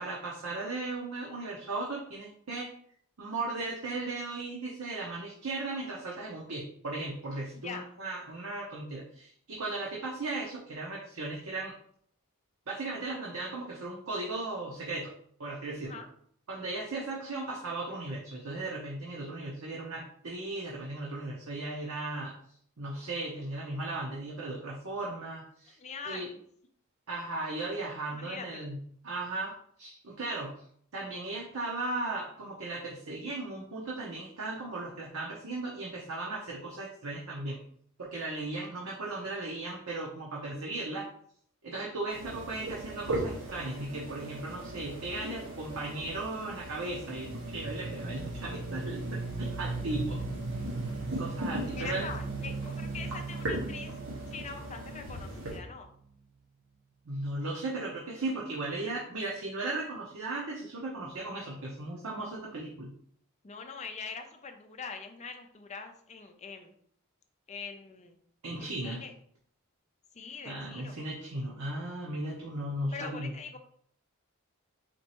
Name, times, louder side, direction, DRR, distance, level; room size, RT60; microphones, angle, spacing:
voice 1, 0.0-2.7 3.2-11.7 12.7-15.1 15.4-16.0 16.5-22.3 22.8-25.8 26.1-26.3 27.1-30.6 30.9-37.6 38.0-41.0 41.6-49.0 49.5-50.2 51.2-52.1 57.1-62.9 68.4-69.0 70.4-73.3, right 2 dB, 85° right, -4 dB, 0.8 m, -36 dB
voice 2, 7.5-7.9 15.8-16.1 25.8-26.4 28.1-28.7 49.7-50.6 51.7-54.0 54.3-55.9 63.4-66.7 67.5-68.2 68.6-69.1 70.1-71.0 72.9-73.6, left 5 dB, 35° left, 6 dB, 0.5 m, -43 dB
sound 1, 42.1-55.6, right 1 dB, 65° right, 1.4 m, -39 dB
sound 2, 47.2-55.8, right 3 dB, 50° right, 0.4 m, -38 dB
4.4 x 3.1 x 2.9 m, 0.62 s
head